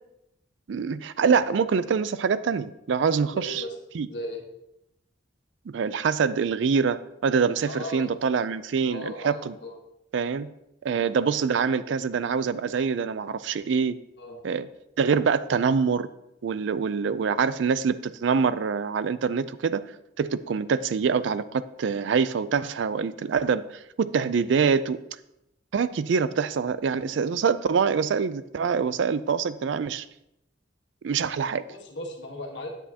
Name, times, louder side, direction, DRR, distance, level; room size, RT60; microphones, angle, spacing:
voice 1, 0.7-3.5 4.0-4.1 5.7-9.5 10.1-10.5 10.8-13.9 14.4-14.7 15.0-16.1 16.4-19.8 20.2-23.6 24.0-25.0 25.7-30.1 31.0-31.6, right 6 dB, 70° right, 15 dB, 0.4 m, -25 dB
voice 2, 3.3-3.8 4.1-4.4 7.6-8.1 8.8-9.8 10.9-11.1 14.2-14.4 31.7-32.7, left 1 dB, 65° left, 1 dB, 1.4 m, -37 dB
9.7 x 8.0 x 2.8 m, 0.84 s
head